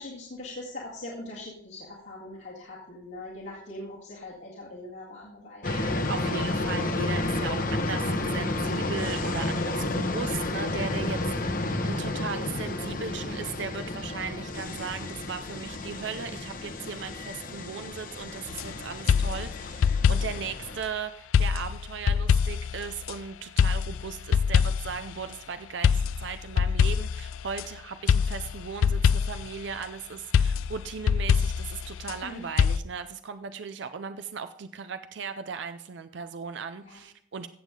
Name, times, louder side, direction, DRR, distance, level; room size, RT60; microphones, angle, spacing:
voice 1, 0.0-5.7 32.2-32.4 36.8-37.0, left 1 dB, 70° left, -5 dB, 2.2 m, -41 dB
sound 1, 5.6-20.8, left 2 dB, 45° left, 1.0 m, -31 dB
voice 2, 5.6-37.5, right 6 dB, 65° right, 10 dB, 0.5 m, -37 dB
sound 2, 18.5-18.7 19.1-20.5 21.3-23.1 23.6-25.1 25.8-27.6 28.1-29.6 30.3-32.2 32.6-32.8, left 6 dB, 85° left, 0.3 m, -24 dB
15.5 x 7.2 x 3.7 m, 0.70 s
head